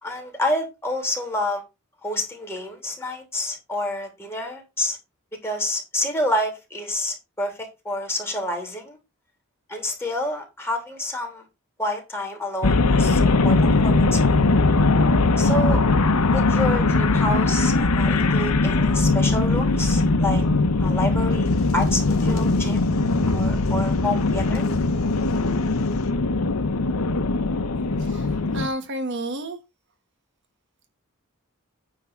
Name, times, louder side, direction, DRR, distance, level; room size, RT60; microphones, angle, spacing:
voice 1, 0.0-1.6 2.0-5.0 5.4-9.0 9.7-11.4 11.8-14.4 15.4-15.8 16.3-20.4 20.8-22.8 23.3-24.6, left 1 dB, 10° left, 2.8 m, -28 dB
sound 1, 12.6-28.7, left 3 dB, 90° left, 0.9 m, -20 dB
sound 2, 20.8-26.1, left 1 dB, 70° left, 2.5 m, -38 dB
voice 2, 28.0-29.6, right 1 dB, 55° right, 1.3 m, -31 dB
9.6 x 3.6 x 7.1 m
head